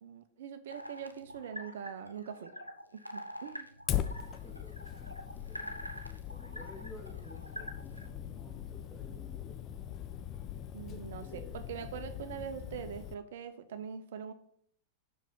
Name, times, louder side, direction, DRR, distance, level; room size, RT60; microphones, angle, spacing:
voice 1, 0.0-2.5 2.9-3.7 10.7-14.3, right 8 dB, 60° right, 10 dB, 0.7 m, -43 dB
sound 1, 0.7-8.1, equal, 90° left, 0.6 m, -46 dB
Fire, 3.9-13.1, left 11 dB, 35° left, 0.4 m, -40 dB
voice 2, 4.2-5.9 6.3-9.6 10.9-11.6, left 1 dB, 10° left, 1 dB, 1.8 m, -53 dB
5.5 x 5.1 x 5.4 m, 0.67 s
figure-of-eight pair, 90°, 0 cm